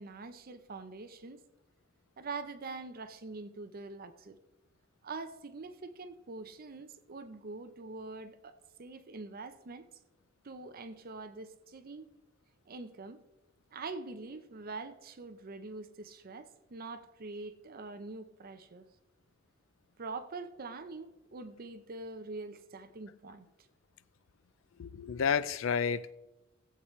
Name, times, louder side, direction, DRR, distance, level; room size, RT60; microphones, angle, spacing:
voice 1, 0.0-1.4 2.2-4.4 5.0-9.9 10.4-12.1 12.7-13.2 13.7-18.9 20.0-23.5, right 3 dB, 45° right, 0.6 m, -44 dB
voice 2, 24.8-26.1, left 6 dB, 70° left, 0.4 m, -30 dB
17.5 x 8.0 x 3.1 m
head